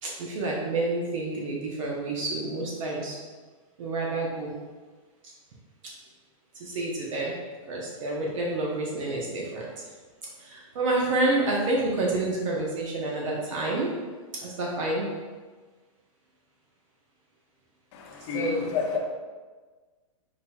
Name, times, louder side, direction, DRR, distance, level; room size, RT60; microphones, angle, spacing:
voice 1, 0.0-3.2 3.8-4.5 6.6-7.3 7.7-9.9 10.4-13.9 14.3-15.1 18.3-18.8, right 2 dB, 65° right, -2 dB, 1.0 m, -28 dB
voice 2, 17.9-19.0, left 6 dB, 50° left, 1 dB, 0.8 m, -30 dB
5.1 x 4.3 x 2.3 m, 1.4 s
hypercardioid pair, 145°, 18 cm